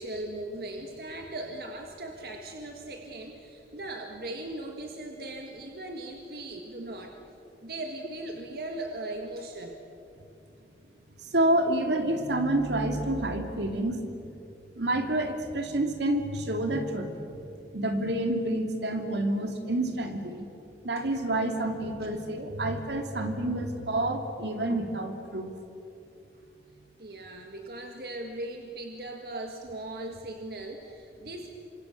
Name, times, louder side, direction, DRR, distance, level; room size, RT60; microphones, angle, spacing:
voice 1, 0.0-7.1 7.6-9.8 21.0-21.1 27.0-31.5, right 1 dB, 55° right, 2 dB, 1.8 m, -39 dB
voice 2, 11.2-14.3 14.8-20.5 20.8-25.6, right 1 dB, 75° right, 4 dB, 2.6 m, -29 dB
28.5 x 25.5 x 6.7 m, 2.8 s
head